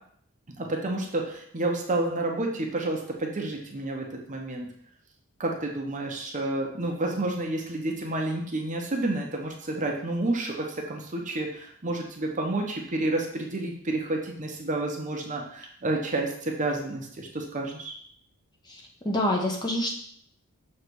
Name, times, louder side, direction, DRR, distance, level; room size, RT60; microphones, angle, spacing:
voice 1, 0.6-4.7 5.4-17.9, right 2 dB, 35° right, 1 dB, 0.9 m, -30 dB
voice 2, 18.7-20.0, left 1 dB, 20° left, 0 dB, 0.9 m, -27 dB
6.7 x 3.2 x 4.6 m, 0.63 s
head